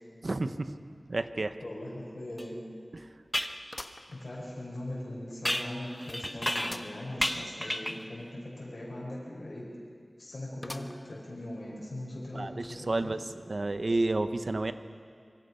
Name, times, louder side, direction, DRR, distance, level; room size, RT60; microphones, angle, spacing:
voice 1, 0.2-0.8 1.1-1.5 2.9-3.1 12.3-14.7, right 2 dB, 70° right, 10 dB, 1.0 m, -31 dB
sound 1, 1.5-1.6 2.0-2.1 3.7-4.8 5.3-5.4 6.6-7.0 7.5-7.6 7.8-7.9 10.6-11.2 11.8-11.9 12.9-13.0, left 1 dB, 40° left, 1.1 m, -45 dB
voice 2, 1.6-2.6 4.1-9.6 10.2-13.1, left 1 dB, 75° left, -5 dB, 5.3 m, -40 dB
sound 2, 2.4-2.5 3.3-3.6 5.4-6.9 7.2-8.1, equal, 10° left, 1.1 m, -32 dB
25.5 x 24.0 x 5.7 m, 2.2 s
wide cardioid pair, 60°, 0 cm